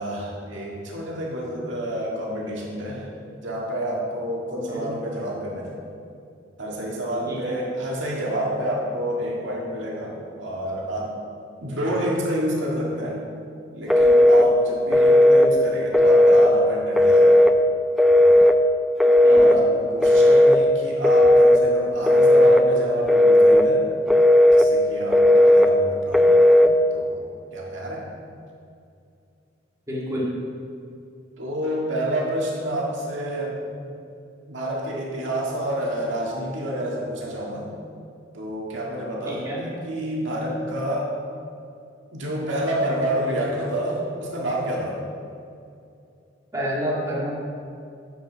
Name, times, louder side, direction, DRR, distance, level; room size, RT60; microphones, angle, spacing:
voice 1, 0.0-3.1 3.4-5.7 6.6-11.2 11.6-13.2 13.7-17.5 19.2-23.9 24.5-26.5 26.9-27.2 27.5-28.1 31.4-33.9 34.5-37.7 38.3-41.1 42.1-45.0, equal, 85° right, -3 dB, 1.8 m, -28 dB
voice 2, 4.5-4.9 7.3-7.5 19.2-19.6 29.9-30.3 39.3-39.6 46.5-47.3, equal, 15° right, -6 dB, 2.0 m, -29 dB
Telephone, 13.9-14.5 14.9-15.5 15.9-16.5 17.0-17.5 18.0-18.6 19.0-19.6 20.0-20.6 21.0-21.6 22.1-22.6 23.1-23.7 24.1-24.7 25.1-25.7 26.1-26.7, left 1 dB, ahead, 0.3 m, -14 dB
9.2 x 5.3 x 6.1 m, 2.5 s
head